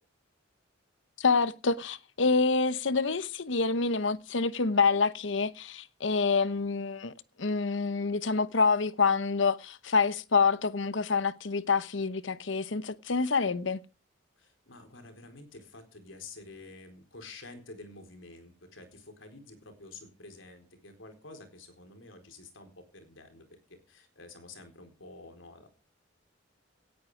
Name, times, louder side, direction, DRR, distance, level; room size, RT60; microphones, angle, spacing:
voice 1, 1.2-7.1 7.4-13.8, left 4 dB, 70° left, 0.9 m, -27 dB
voice 2, 14.4-25.7, left 3 dB, 90° left, 4.3 m, -49 dB
17.5 x 9.6 x 5.0 m
head